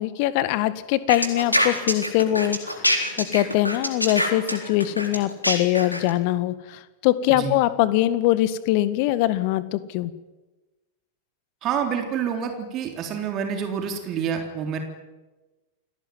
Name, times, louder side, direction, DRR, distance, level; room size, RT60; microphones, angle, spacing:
voice 1, 0.0-10.1, left 15 dB, 45° left, 14 dB, 1.8 m, -23 dB
sound 1, 1.1-6.1, equal, 85° left, 4.0 m, -24 dB
voice 2, 11.6-14.8, right 7 dB, 35° right, 4 dB, 3.7 m, -27 dB
28.5 x 18.5 x 9.5 m, 1.2 s
figure-of-eight pair, 90°, 0 cm